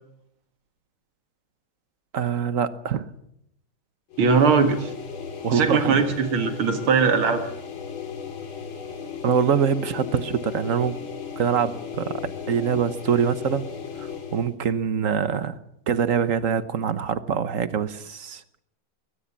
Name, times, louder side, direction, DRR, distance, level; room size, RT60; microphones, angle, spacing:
voice 1, 2.1-3.1 5.4-6.0 9.2-10.9 11.4-12.2 12.5-13.7 14.0-15.6 15.9-18.4, right 7 dB, 50° right, 13 dB, 1.2 m, -24 dB
sound 1, 4.1-14.5, left 7 dB, 75° left, 3.1 m, -36 dB
voice 2, 4.2-4.9 5.5-7.4, right 5 dB, 90° right, 7 dB, 2.7 m, -20 dB
22.5 x 18.5 x 7.4 m, 0.77 s
omnidirectional pair, 2.2 m